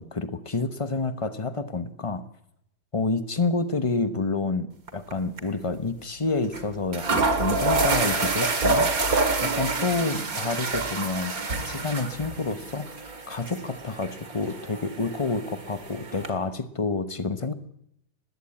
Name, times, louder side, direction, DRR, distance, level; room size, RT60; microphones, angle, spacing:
voice 1, 0.0-2.2 2.9-17.5, left 3 dB, 30° left, 11 dB, 0.6 m, -29 dB
sound 1, 4.9-5.1 5.4-5.5 6.5-6.6 6.9-16.3, right 3 dB, 45° right, 2.5 m, -27 dB
19.0 x 18.0 x 8.6 m, 0.80 s
omnidirectional pair, 2.2 m